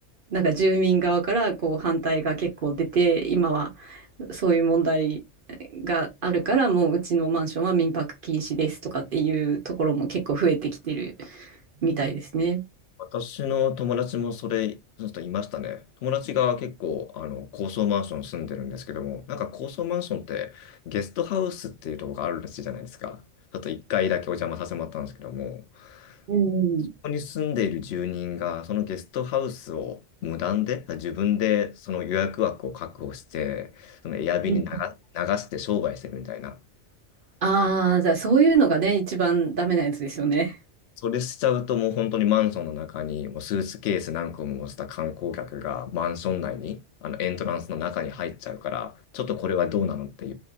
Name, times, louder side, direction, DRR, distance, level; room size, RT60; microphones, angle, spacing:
voice 1, 0.3-5.2 5.7-11.5 11.8-12.6 26.3-26.9 34.5-34.6 37.4-40.6, right 4 dB, 55° right, 0.7 m, -24 dB
voice 2, 13.0-23.2 23.5-26.2 27.0-36.6 41.0-50.3, left 9 dB, 65° left, 0.8 m, -29 dB
2.6 x 2.4 x 2.3 m
omnidirectional pair, 1.3 m